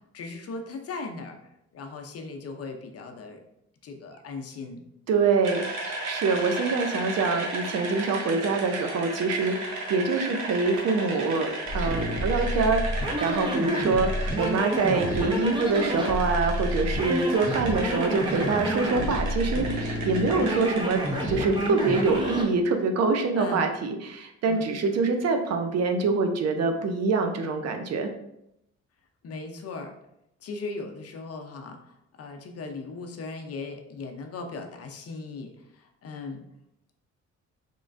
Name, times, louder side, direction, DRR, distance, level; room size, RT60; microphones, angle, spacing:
voice 1, 0.1-1.4 1.7-3.4 3.8-4.8 16.9-17.3 19.4-19.7 23.3-23.7 24.4-24.7 29.2-29.9 30.4-36.4, left 3 dB, 50° left, 4 dB, 0.6 m, -38 dB
voice 2, 5.1-5.6 6.0-28.1, right 4 dB, 55° right, 5 dB, 0.6 m, -25 dB
sound 1, 5.4-22.4, right 2 dB, 75° right, 1.0 m, -35 dB
sound 2, 11.6-22.5, equal, 15° right, 0.8 m, -29 dB
3.7 x 3.1 x 2.5 m, 0.80 s
cardioid pair, 90°, 30 cm